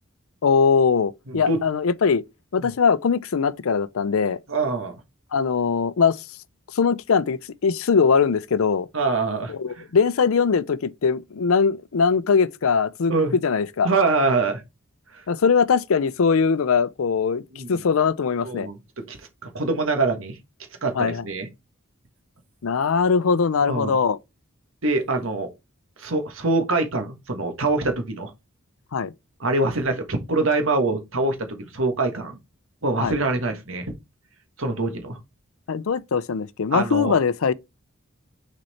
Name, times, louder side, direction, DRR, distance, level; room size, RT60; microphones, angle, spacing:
voice 1, 0.4-2.2 2.5-4.4 5.3-6.2 6.7-8.9 9.5-13.9 15.3-17.4 17.7-18.7 21.0-21.2 22.6-24.2 28.9-29.1 33.0-33.2 35.7-37.5, left 5 dB, 75° left, 0.5 m, -21 dB
voice 2, 1.3-1.6 2.6-2.7 4.5-4.9 8.9-9.8 13.1-13.3 13.8-14.6 15.1-15.2 17.5-17.8 18.4-18.8 19.1-20.4 20.8-21.5 23.6-24.0 24.8-25.5 26.0-28.3 29.4-32.4 32.8-33.9 34.6-35.2 36.7-37.2, right 3 dB, 65° right, 1.4 m, -24 dB
6.4 x 4.2 x 4.2 m
head